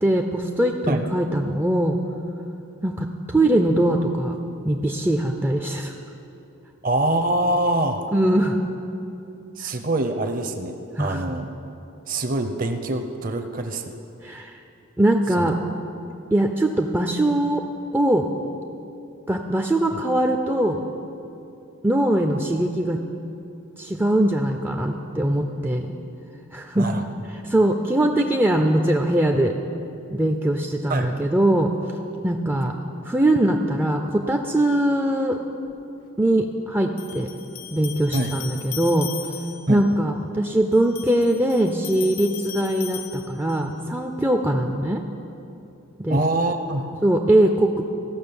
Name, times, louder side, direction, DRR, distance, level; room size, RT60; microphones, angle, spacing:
voice 1, 0.0-2.0 2.8-4.4 4.6-5.9 8.1-8.6 11.0-11.2 14.2-14.6 15.0-15.6 16.3-17.6 17.9-18.3 19.3-20.8 21.8-23.0 23.8-25.9 26.5-26.9 27.4-29.5 30.1-31.7 32.2-32.7 33.0-35.4 36.2-37.3 37.7-39.1 39.7-45.0 46.0-46.2 47.0-47.8, right 1 dB, 10° right, 3 dB, 0.4 m, -21 dB
voice 2, 6.8-8.0 9.6-11.5 12.1-14.0 15.4-15.5 26.7-27.0 30.9-31.3 38.1-38.3 39.7-39.8 46.1-47.0, right 1 dB, 40° right, 7 dB, 0.7 m, -24 dB
sound 1, 35.7-35.8 37.0-39.8 40.7-43.8, left 10 dB, 80° left, 0.8 m, -38 dB
15.0 x 6.1 x 7.0 m, 2.7 s
head